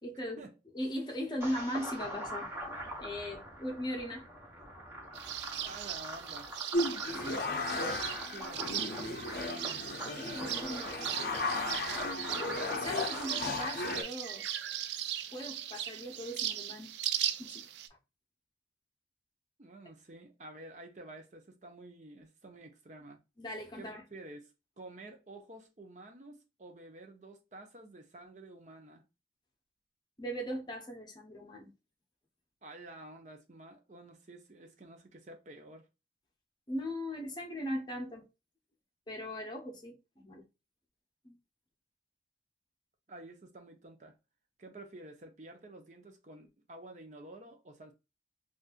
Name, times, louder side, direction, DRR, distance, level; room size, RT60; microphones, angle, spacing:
voice 1, 0.0-0.4 0.7-4.3 7.0-7.4 10.2-11.1 12.6-14.5 15.3-16.9 17.4-17.7 23.4-24.0 30.2-31.7 36.7-38.3 39.1-40.4 41.2-41.4, equal, 25° left, 0.8 m, -39 dB
sound 1, 1.4-13.3, right 1 dB, 15° right, 1.0 m, -43 dB
sound 2, 5.1-17.9, right 11 dB, 75° right, 0.3 m, -39 dB
voice 2, 5.6-6.5 8.3-9.5 19.6-23.2 23.8-29.0 32.6-35.8 43.1-44.1 44.6-47.9, right 2 dB, 40° right, 0.7 m, -50 dB
sound 3, 6.7-14.0, left 2 dB, 55° left, 0.5 m, -35 dB
4.1 x 2.5 x 2.4 m
head